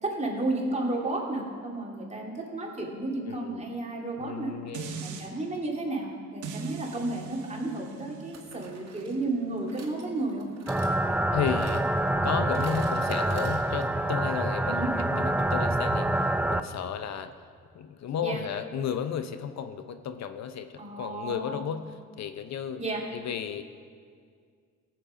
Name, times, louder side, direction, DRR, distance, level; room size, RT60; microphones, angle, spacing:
voice 1, 0.0-4.5 4.9-10.5 14.6-14.9 18.2-18.4 20.8-21.7 22.8-23.0, right 2 dB, 20° right, -1 dB, 2.5 m, -32 dB
voice 2, 3.3-3.6 4.2-5.0 11.3-11.8 12.1-17.3 17.7-20.7 21.0-21.8 22.2-22.8 23.1-23.6, left 8 dB, 60° left, 9 dB, 0.7 m, -33 dB
sound 1, 4.7-5.3 6.4-11.6 12.0-12.1, right 6 dB, 80° right, 1.2 m, -42 dB
sound 2, 7.0-7.2 8.3-14.1 14.3-14.4 14.6-14.7, right 4 dB, 60° right, 2.0 m, -50 dB
sound 3, 10.7-16.6, right 1 dB, 5° right, 0.4 m, -26 dB
17.0 x 7.6 x 5.0 m, 2.1 s
cardioid pair, 90°, 30 cm